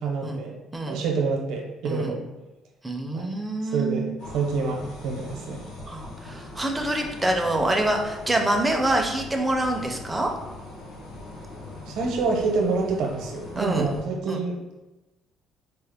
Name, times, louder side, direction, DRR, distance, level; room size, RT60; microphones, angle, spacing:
voice 1, 0.0-0.6 0.9-2.2 3.1-3.3 3.7-5.6 11.9-14.8, right 4 dB, 70° right, 1 dB, 0.7 m, -27 dB
voice 2, 2.8-4.1 5.9-10.3 13.6-13.9 14.3-14.4, right 1 dB, 10° right, 2 dB, 0.4 m, -26 dB
sound 1, 4.2-14.0, left 2 dB, 75° left, 0.8 m, -41 dB
4.3 x 2.0 x 3.4 m, 1.0 s
cardioid pair, 165°, 0 cm